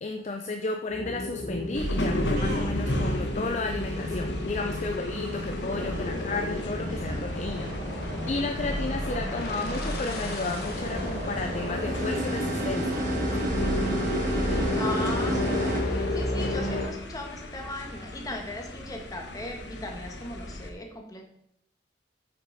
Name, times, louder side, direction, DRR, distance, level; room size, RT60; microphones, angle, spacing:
voice 1, 0.0-7.7 8.3-13.0, left 3 dB, 40° left, 5 dB, 0.5 m, -33 dB
sound 1, 0.9-16.9, left 1 dB, 55° left, 1.6 m, -32 dB
sound 2, 1.7-20.7, left 1 dB, 70° left, 1.1 m, -35 dB
sound 3, 2.4-15.8, right 1 dB, 45° right, 2.3 m, -34 dB
voice 2, 14.7-21.2, left 2 dB, 20° left, 2 dB, 1.4 m, -38 dB
8.9 x 6.7 x 4.1 m, 0.75 s
head